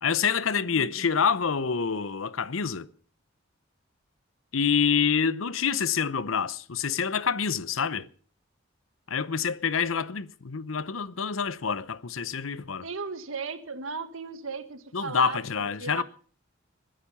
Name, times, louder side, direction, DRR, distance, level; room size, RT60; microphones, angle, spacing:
voice 1, 0.0-2.9 4.5-8.1 9.1-12.9 14.9-16.0, left 6 dB, 80° left, 0.8 m, -27 dB
voice 2, 0.7-1.1 12.8-16.0, right 5 dB, 85° right, 1.7 m, -36 dB
20.5 x 10.5 x 5.6 m
head